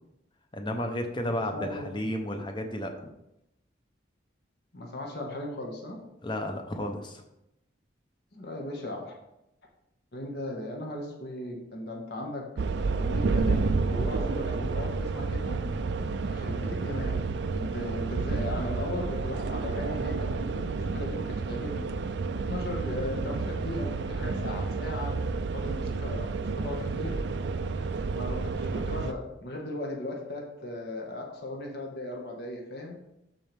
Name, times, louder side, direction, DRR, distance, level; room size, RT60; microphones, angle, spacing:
voice 1, 0.5-3.1 6.2-7.2, left 1 dB, 25° left, 5 dB, 0.9 m, -32 dB
voice 2, 1.5-1.9 4.7-6.0 8.3-9.1 10.1-12.5 13.0-15.6 16.3-17.2 17.5-21.9 22.5-25.2 25.5-27.2 28.1-33.0, left 1 dB, 60° left, 0 dB, 1.6 m, -37 dB
sound 1, 12.6-29.1, right 4 dB, 65° right, 0.4 m, -30 dB
12.5 x 4.4 x 3.5 m, 0.85 s
head